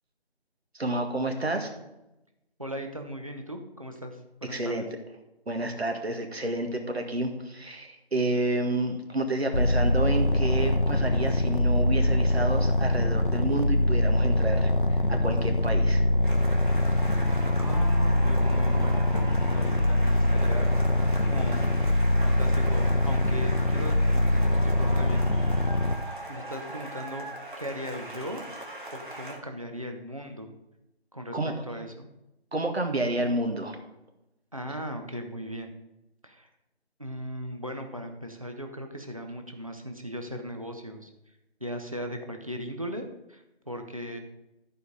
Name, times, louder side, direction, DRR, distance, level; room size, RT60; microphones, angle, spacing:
voice 1, 0.7-1.7 4.5-4.8 5.5-16.1 31.3-31.5 32.5-33.8, right 2 dB, 70° right, 4 dB, 1.9 m, -30 dB
voice 2, 2.6-4.9 17.6-20.8 21.2-21.7 22.2-25.5 26.3-27.3 27.6-28.4 28.9-30.5 31.1-31.4 31.6-32.1 34.5-35.7 36.2-36.5 37.0-41.1 41.6-44.2, equal, 30° right, 4 dB, 0.8 m, -38 dB
sound 1, 9.5-26.0, left 1 dB, 50° left, 0.8 m, -23 dB
sound 2, 16.2-29.4, right 1 dB, 50° right, 1.8 m, -40 dB
13.5 x 4.9 x 5.2 m, 0.94 s
figure-of-eight pair, 180°, 32 cm